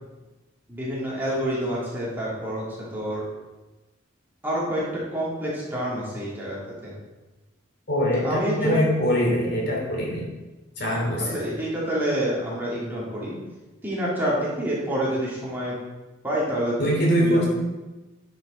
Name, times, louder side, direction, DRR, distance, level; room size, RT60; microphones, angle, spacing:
voice 1, 0.7-2.6 2.9-3.2 4.4-4.8 5.1-6.9 8.2-8.8 11.3-13.4 13.8-15.7 16.2-16.7 17.2-17.5, right 1 dB, 10° right, -7 dB, 2.7 m, -27 dB
voice 2, 7.9-10.3 10.8-11.3 16.8-17.5, equal, 55° left, -3 dB, 2.9 m, -23 dB
10.5 x 6.6 x 4.3 m, 1.1 s
head